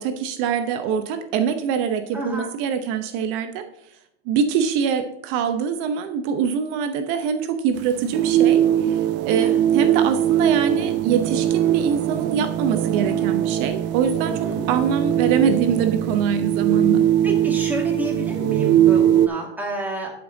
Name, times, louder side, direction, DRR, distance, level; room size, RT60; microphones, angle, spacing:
voice 1, 0.0-3.6 4.3-14.3 14.7-17.0, right 7 dB, 55° right, 8 dB, 0.9 m, -24 dB
voice 2, 2.1-2.5 9.3-9.6 10.5-10.6 14.2-14.7 17.2-20.1, right 1 dB, 5° right, -2 dB, 2.1 m, -30 dB
sound 1, 7.8-19.3, right 11 dB, 35° right, 0.5 m, -21 dB
11.0 x 5.2 x 3.9 m, 0.81 s
supercardioid pair, 130°, 33 cm